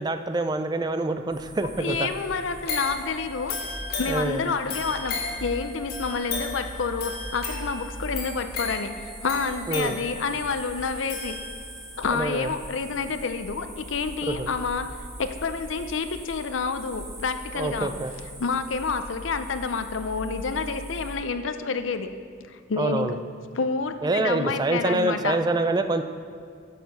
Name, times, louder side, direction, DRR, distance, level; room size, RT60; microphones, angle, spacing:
voice 1, 0.0-2.1 4.1-4.4 9.7-10.0 12.1-12.5 14.3-14.5 17.5-18.1 22.8-23.2 24.0-26.0, right 2 dB, 20° right, 8 dB, 0.4 m, -26 dB
sound 1, 1.3-21.2, right 1 dB, 55° right, 2.3 m, -41 dB
voice 2, 1.8-3.6 4.0-11.4 12.0-17.9 18.4-22.1 22.5-23.2 23.5-25.4, left 5 dB, 75° left, 9 dB, 0.6 m, -29 dB
sound 2, 2.7-11.9 12.4-12.5, left 3 dB, 50° left, 2.2 m, -35 dB
10.5 x 6.7 x 5.4 m, 2.2 s
head